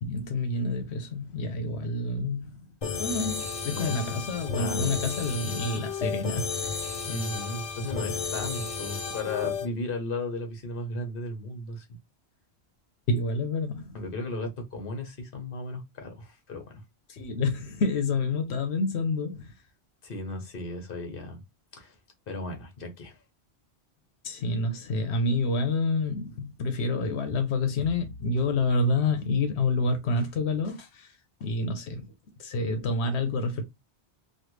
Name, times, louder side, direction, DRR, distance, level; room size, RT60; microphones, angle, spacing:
voice 1, 0.0-2.7 3.0-6.5 6.8-6.9 13.1-13.9 17.1-19.5 24.2-31.2 31.4-32.1 32.4-33.6, left 3 dB, 85° left, 0.9 m, -28 dB
sound 1, 2.8-9.7, left 5 dB, 40° left, 0.6 m, -33 dB
voice 2, 3.7-4.1 4.6-5.0 7.0-11.9 13.9-16.8 20.0-21.4 21.7-22.0 22.3-23.2, left 2 dB, 55° left, 1.2 m, -35 dB
3.2 x 2.4 x 3.1 m
omnidirectional pair, 1.1 m